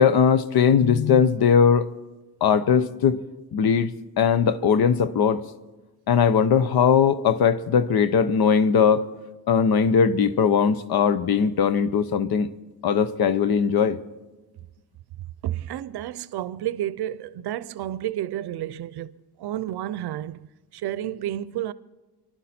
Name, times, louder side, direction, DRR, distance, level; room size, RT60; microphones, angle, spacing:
voice 1, 0.0-1.9 2.4-3.2 3.5-3.9 4.2-5.4 6.1-9.1 9.5-12.5 12.8-14.0, left 7 dB, 70° left, 0.8 m, -19 dB
voice 2, 15.4-19.1 19.4-21.7, right 12 dB, 85° right, 0.6 m, -31 dB
29.0 x 11.5 x 4.3 m
wide cardioid pair, 130°, 38 cm